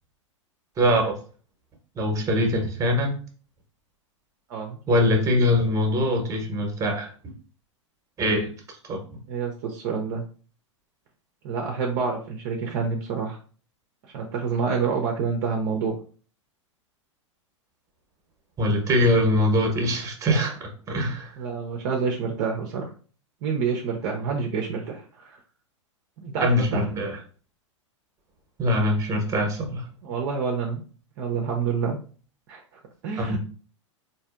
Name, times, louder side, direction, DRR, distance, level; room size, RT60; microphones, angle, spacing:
voice 1, 0.8-1.2 1.9-3.2 4.9-7.1 8.2-8.5 8.9-9.0 18.6-21.3 26.4-27.2 28.6-29.8 33.2-33.4, left 1 dB, 20° right, 3 dB, 1.0 m, -23 dB
voice 2, 9.3-10.2 11.4-13.4 14.0-15.9 21.4-22.9 23.4-25.4 26.2-26.8 30.0-30.8 31.2-32.0 32.5-32.6 33.0-33.4, right 5 dB, 45° right, 1 dB, 0.7 m, -28 dB
4.3 x 2.6 x 2.5 m, 0.40 s
figure-of-eight pair, 95°, 16 cm